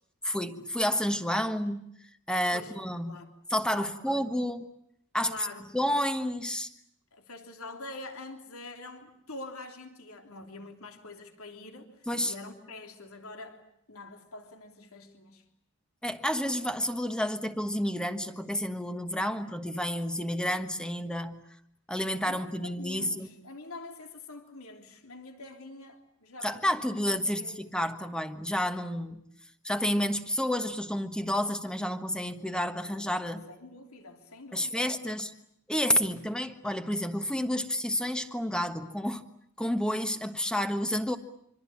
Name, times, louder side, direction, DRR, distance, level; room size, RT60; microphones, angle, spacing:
voice 1, 0.2-1.9 2.3-3.2 3.5-4.6 5.1-5.3 5.7-6.7 12.1-12.3 16.0-21.4 21.9-23.3 26.4-29.2 29.6-33.5 34.5-35.3 35.7-39.2 39.6-41.2, equal, 5° left, 1.3 m, -30 dB
voice 2, 3.7-4.2 5.2-5.7 7.1-15.4 22.2-27.9 33.5-35.2, left 2 dB, 75° left, 3.3 m, -45 dB
25.5 x 25.5 x 8.6 m
head